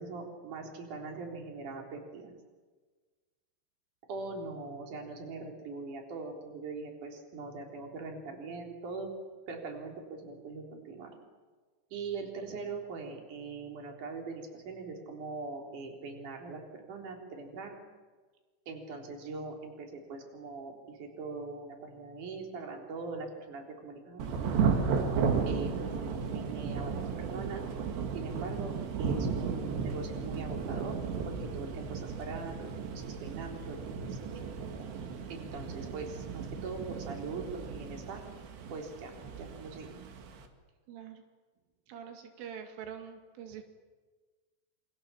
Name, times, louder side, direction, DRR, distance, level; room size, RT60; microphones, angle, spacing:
voice 1, 0.0-2.4 4.1-9.1 9.5-11.1 11.9-17.8 18.7-25.0 25.5-27.7 28.1-28.7 29.0-31.0 31.3-34.4 35.3-38.3 38.7-40.0, right 4 dB, 45° right, 2 dB, 4.9 m, -41 dB
Thunder / Rain, 24.2-40.5, right 5 dB, 65° right, 4.1 m, -34 dB
voice 2, 40.9-41.2 41.9-43.6, right 8 dB, 90° right, 5 dB, 4.8 m, -45 dB
28.0 x 26.5 x 7.1 m, 1.4 s
omnidirectional pair, 5.5 m